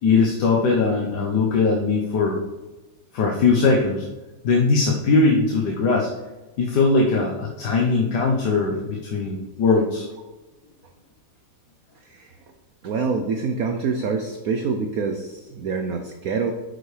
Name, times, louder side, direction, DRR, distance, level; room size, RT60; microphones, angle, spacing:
voice 1, 0.0-2.4 3.1-4.0 4.4-6.1 6.6-10.1, left 4 dB, 60° left, -2 dB, 1.4 m, -20 dB
voice 2, 12.0-12.3 12.8-16.5, right 5 dB, 75° right, 5 dB, 0.8 m, -26 dB
9.1 x 6.5 x 3.3 m, 1.1 s
omnidirectional pair, 2.3 m